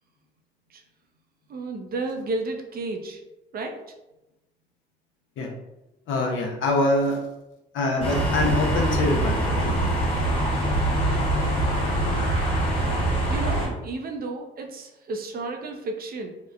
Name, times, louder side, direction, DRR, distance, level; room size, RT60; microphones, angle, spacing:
voice 1, 1.5-3.2 3.5-3.8 13.3-16.4, right 2 dB, 50° right, 3 dB, 0.5 m, -32 dB
voice 2, 6.1-7.2 7.7-9.8, left 2 dB, 80° left, 1 dB, 0.6 m, -24 dB
sound 1, 8.0-13.7, right 1 dB, 25° left, 1.2 m, -24 dB
2.8 x 2.0 x 2.4 m, 0.95 s
cardioid pair, 90°, 20 cm